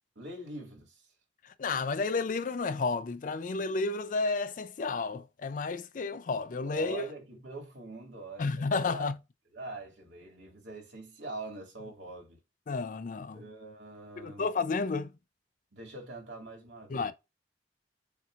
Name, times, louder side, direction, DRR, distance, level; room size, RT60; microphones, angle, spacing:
voice 1, 0.2-1.0 6.6-9.1 9.5-12.4 13.3-14.5 15.7-17.1, right 2 dB, 90° right, 2.3 m, -44 dB
voice 2, 1.4-7.0 8.4-9.2 12.7-13.4 14.2-15.1 16.9-17.1, left 4 dB, 45° left, 0.4 m, -31 dB
7.1 x 2.8 x 2.4 m
head